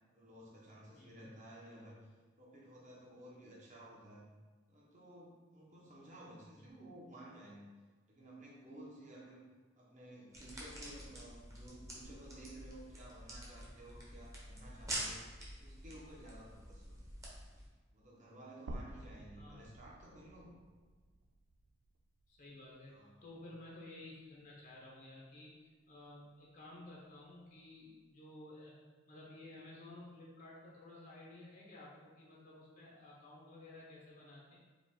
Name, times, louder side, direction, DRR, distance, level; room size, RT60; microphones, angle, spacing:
voice 1, 0.1-2.0 2.4-4.2 4.7-7.7 8.1-9.5 9.8-15.2 15.6-17.1 17.9-20.5 22.9-23.2, right 1 dB, 40° right, -5 dB, 1.1 m, -54 dB
voice 2, 0.9-1.3 6.6-6.7 10.5-10.6 19.3-19.7 22.3-23.0 23.2-28.7 29.1-34.6, left 2 dB, 45° left, -5 dB, 0.8 m, -54 dB
sound 1, 10.3-17.7, right 1 dB, 15° right, 1.0 m, -47 dB
sound 2, 18.7-22.8 23.2-23.3 24.7-24.8, right 1 dB, 60° right, 0.4 m, -51 dB
5.0 x 2.5 x 3.7 m, 1.3 s
head